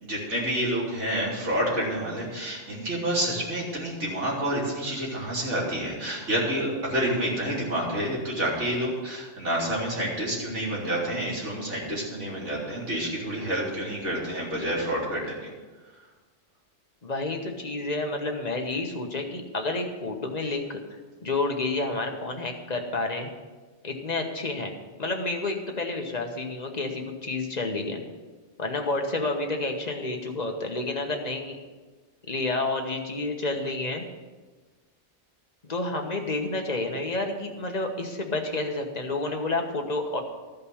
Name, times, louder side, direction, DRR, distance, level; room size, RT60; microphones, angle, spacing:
voice 1, 0.0-15.5, right 1 dB, 90° right, -4 dB, 3.3 m, -28 dB
voice 2, 17.0-20.8 21.2-23.3 23.8-24.7 25.0-28.0 28.6-31.6 32.3-34.1 35.7-40.2, left 2 dB, 35° left, 3 dB, 1.3 m, -29 dB
13.0 x 5.4 x 7.0 m, 1.3 s
omnidirectional pair, 1.2 m